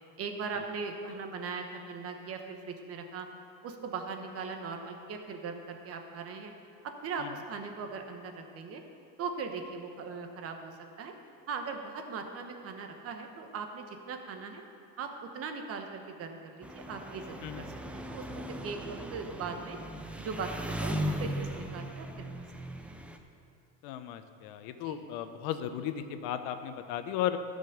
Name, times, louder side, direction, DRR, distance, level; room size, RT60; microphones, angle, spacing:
voice 1, 0.2-3.3 3.6-6.5 6.8-8.8 9.2-11.1 11.5-14.6 15.0-17.7 17.9-19.8 20.2-22.2 22.8-22.9 24.8-25.0, right 5 dB, 45° right, 5 dB, 1.1 m, -39 dB
Engine, 16.6-23.2, equal, 5° right, 0.5 m, -38 dB
voice 2, 23.8-27.4, left 11 dB, 85° left, 9 dB, 0.8 m, -35 dB
14.0 x 5.2 x 6.8 m, 2.6 s
cardioid pair, 140°, 34 cm